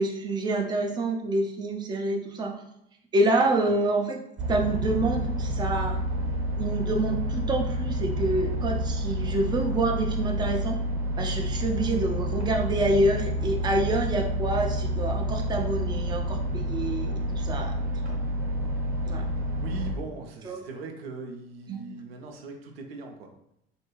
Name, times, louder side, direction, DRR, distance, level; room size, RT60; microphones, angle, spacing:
voice 1, 0.0-2.6 3.1-4.2 4.5-6.0 6.6-10.8 11.2-17.8 19.0-19.3 20.5-20.6 21.7-21.8, right 2 dB, 15° right, 1 dB, 0.4 m, -27 dB
sound 1, 4.4-20.0, equal, 45° right, 0.9 m, -29 dB
voice 2, 19.6-23.3, right 3 dB, 80° right, 3 dB, 0.5 m, -40 dB
2.6 x 2.2 x 2.9 m, 0.78 s
hypercardioid pair, 65°, 30 cm